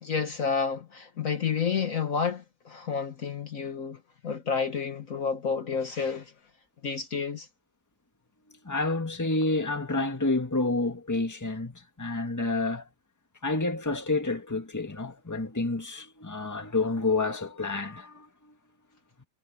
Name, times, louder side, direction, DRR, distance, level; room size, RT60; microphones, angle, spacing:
voice 1, 0.0-6.3 6.8-7.5, left 6 dB, 55° left, 1.7 m, -30 dB
voice 2, 8.6-12.9 13.4-18.3, left 2 dB, 10° left, 1.8 m, -29 dB
omnidirectional pair, 1.8 m